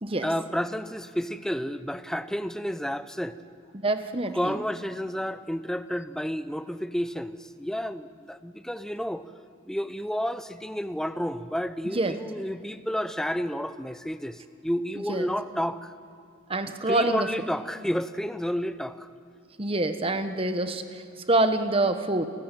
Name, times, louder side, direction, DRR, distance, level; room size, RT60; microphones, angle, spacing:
voice 1, 0.2-3.4 4.3-9.3 9.7-15.9 16.9-19.1, equal, 5° left, 12 dB, 0.6 m, -31 dB
voice 2, 3.7-4.6 11.9-12.1 15.1-15.3 16.5-17.3 19.6-22.3, right 2 dB, 25° right, 8 dB, 1.2 m, -26 dB
29.0 x 14.5 x 9.1 m, 2.4 s
head